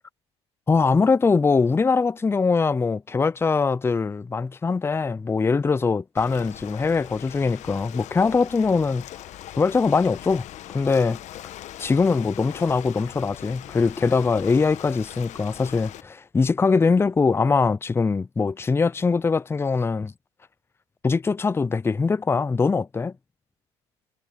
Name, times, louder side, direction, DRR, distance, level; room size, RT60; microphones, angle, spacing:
voice 1, 0.7-9.0 9.6-11.2 11.8-20.1 21.0-23.1, left 4 dB, 15° left, 0.5 m, -22 dB
Ocean, 6.2-16.0, left 13 dB, 60° left, 1.4 m, -41 dB
supercardioid pair, 80°, 14 cm